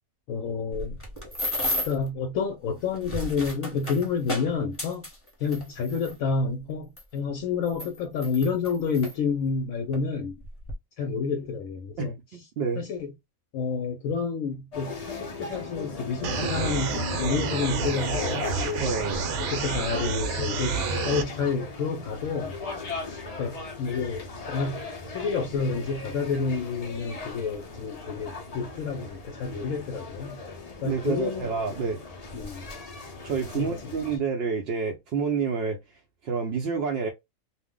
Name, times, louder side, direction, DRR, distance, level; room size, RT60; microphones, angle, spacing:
voice 1, 0.3-1.0 1.8-5.1 5.4-10.3 11.0-12.1 12.8-13.1 13.5-18.8 19.3-22.5 23.0-24.2 24.5-30.4 30.8-31.5 32.3-32.6 33.5-33.9, left 5 dB, 75° left, 1.0 m, -29 dB
sound 1, 0.7-2.1 2.8-6.1 7.0-7.1 7.7-9.1 9.9-10.1 10.4-10.7, left 1 dB, 10° left, 1.0 m, -33 dB
voice 2, 12.0-12.8 18.8-19.3 30.8-32.0 33.2-35.8 36.2-37.1, right 5 dB, 65° right, 0.6 m, -28 dB
sound 2, 14.7-34.2, left 3 dB, 45° left, 0.5 m, -38 dB
sound 3, 16.2-21.2, right 5 dB, 80° right, 1.1 m, -29 dB
2.5 x 2.0 x 3.6 m
omnidirectional pair, 1.5 m